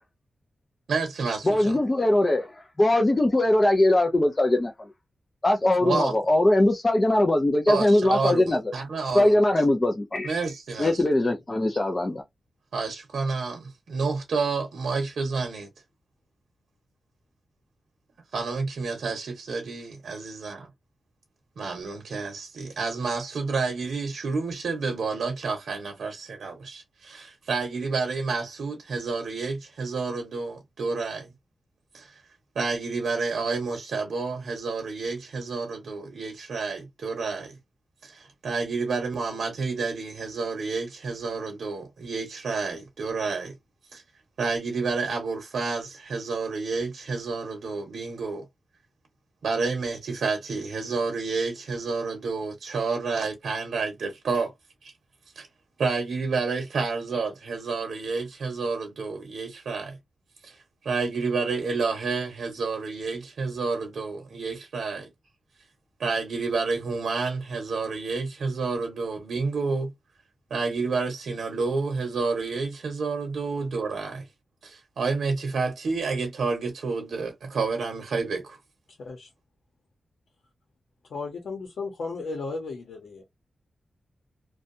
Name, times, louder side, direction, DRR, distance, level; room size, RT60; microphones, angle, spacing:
voice 1, 0.9-1.8 5.8-6.1 7.7-9.5 10.2-11.0 12.7-15.7 18.3-20.7 21.6-31.3 31.9-32.2 32.5-37.6 38.0-43.5 43.9-44.0 44.4-48.4 49.4-54.5 54.8-54.9 55.4-55.5 55.8-60.0 60.4-60.6 60.8-65.1 66.0-69.9 70.5-74.3 74.6-78.6, right 4 dB, 80° right, 0.8 m, -29 dB
voice 2, 1.4-4.9 5.4-8.6 9.1-10.5 10.8-12.2, left 1 dB, 20° left, 0.4 m, -21 dB
voice 3, 78.9-79.3 81.1-83.2, left 3 dB, 85° left, 0.8 m, -35 dB
2.6 x 2.2 x 2.6 m
wide cardioid pair, 150°, 0 cm